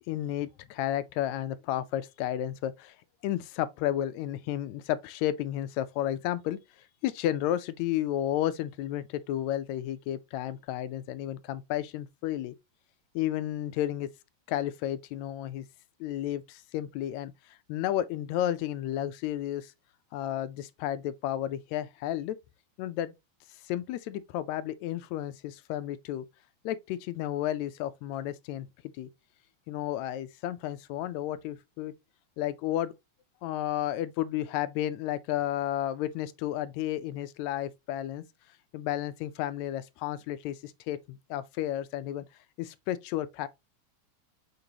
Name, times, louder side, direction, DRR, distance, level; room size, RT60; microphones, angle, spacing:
voice 1, 0.1-3.0 3.2-6.6 7.0-12.6 13.2-14.1 14.5-15.6 16.0-17.3 17.7-19.7 20.1-22.4 22.8-23.1 23.6-26.3 26.7-28.7 29.0-29.1 29.7-31.9 32.4-32.9 33.4-38.2 38.7-42.3 42.6-43.5, left 12 dB, 80° left, 1.7 m, -32 dB
6.6 x 5.2 x 2.8 m
omnidirectional pair, 3.4 m